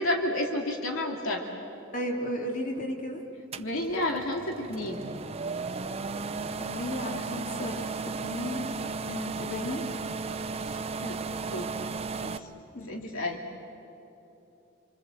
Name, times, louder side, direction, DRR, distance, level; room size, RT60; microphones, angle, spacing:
voice 1, 0.0-1.4 3.6-5.0 9.0-9.4 11.0-11.7 12.2-12.5 12.9-13.4, left 1 dB, 75° left, 2 dB, 2.3 m, -31 dB
voice 2, 1.9-3.2 6.6-8.7 9.4-9.8 12.7-13.0, left 1 dB, 40° left, 1 dB, 2.8 m, -34 dB
sound 1, 3.5-12.4, right 4 dB, 30° right, 0.6 m, -35 dB
27.5 x 24.5 x 7.7 m, 3.0 s
head